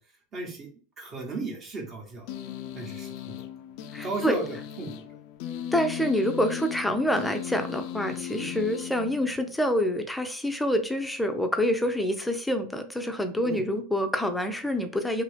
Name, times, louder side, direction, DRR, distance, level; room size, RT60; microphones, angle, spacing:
voice 1, 0.3-0.7 1.0-2.3 2.7-3.3 4.0-5.1 8.4-8.5 13.4-13.6, right 3 dB, 35° right, 1 dB, 0.9 m, -35 dB
sound 1, 2.3-9.7, left 10 dB, 60° left, 0.3 m, -37 dB
voice 2, 3.9-4.4 5.7-15.2, equal, 5° left, 7 dB, 0.5 m, -27 dB
2.8 x 2.6 x 3.3 m, 0.40 s
supercardioid pair, 115°, 0 cm